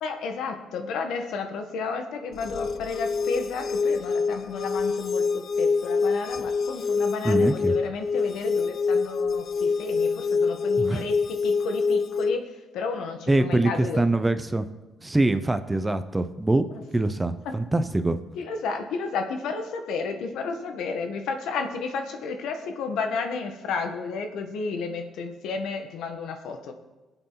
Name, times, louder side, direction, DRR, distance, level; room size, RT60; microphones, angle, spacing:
voice 1, 0.0-14.0 18.4-26.7, left 4 dB, 85° left, 5 dB, 1.5 m, -32 dB
sound 1, 2.4-12.4, left 4 dB, 55° left, 0.5 m, -26 dB
voice 2, 7.2-7.7 10.8-11.0 13.3-14.7 15.0-16.7 16.9-18.2, right 2 dB, 15° right, 10 dB, 0.9 m, -24 dB
20.5 x 7.9 x 4.0 m, 1.1 s
cardioid pair, 90°, 0 cm